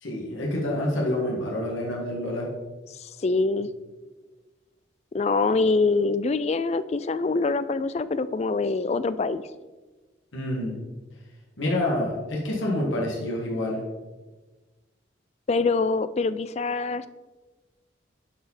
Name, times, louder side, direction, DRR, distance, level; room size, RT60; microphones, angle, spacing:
voice 1, 0.0-2.5 10.3-10.8 11.6-13.8, left 1 dB, 90° left, -2 dB, 1.9 m, -27 dB
voice 2, 3.0-3.7 5.1-9.4 15.5-17.1, left 3 dB, 35° left, 14 dB, 0.3 m, -24 dB
11.0 x 5.0 x 4.2 m, 1.2 s
head